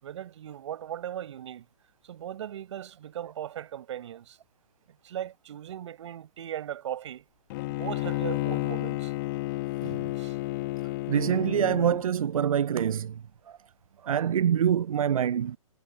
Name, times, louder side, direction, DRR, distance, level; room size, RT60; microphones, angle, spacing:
voice 1, 0.0-1.7 2.0-4.4 5.0-7.2 7.7-9.1 10.2-10.4, right 11 dB, 55° right, 4.9 m, -38 dB
Bowed string instrument, 7.5-12.0, left 20 dB, 35° left, 1.2 m, -31 dB
voice 2, 11.1-13.2 13.5-13.6 14.0-15.6, right 9 dB, 80° right, 0.4 m, -25 dB
hypercardioid pair, 130°, 18 cm